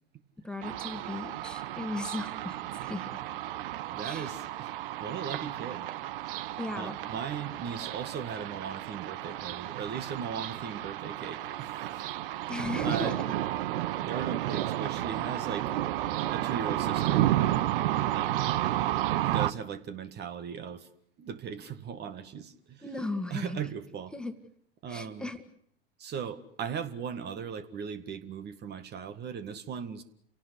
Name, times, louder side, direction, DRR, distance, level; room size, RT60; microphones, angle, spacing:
voice 1, 0.4-3.2 4.0-4.3 6.6-7.0 12.5-13.2 22.8-23.6 24.1-24.3 24.9-25.4, left 2 dB, 5° left, 7 dB, 2.0 m, -36 dB
sound 1, 0.6-19.5, right 14 dB, 65° right, 1.1 m, -32 dB
voice 2, 3.9-4.7 5.0-5.9 6.8-12.0 12.8-13.2 13.8-15.7 16.3-17.6 18.1-18.3 19.2-20.9 21.2-22.8 23.3-24.1 24.8-25.3 26.0-30.0, right 7 dB, 35° right, 11 dB, 1.9 m, -38 dB
29.5 x 18.0 x 8.3 m, 0.69 s
hypercardioid pair, 95°, 30 cm